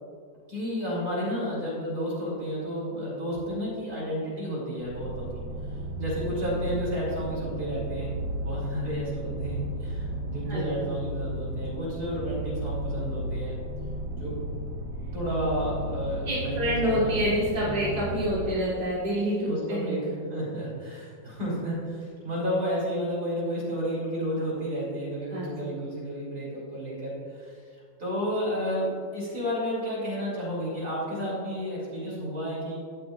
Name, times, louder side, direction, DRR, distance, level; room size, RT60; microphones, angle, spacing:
voice 1, 0.5-5.4 6.0-8.1 8.4-13.6 14.1-14.4 15.1-17.2 17.6-17.8 19.5-27.5 28.0-32.8, equal, 50° right, -6 dB, 3.4 m, -31 dB
sound 1, 4.8-18.5, right 1 dB, 70° right, 2.0 m, -34 dB
voice 2, 10.5-10.9 16.3-20.1 25.3-25.5, equal, 25° right, -9 dB, 2.8 m, -27 dB
17.5 x 7.7 x 2.4 m, 2.1 s
omnidirectional pair, 2.1 m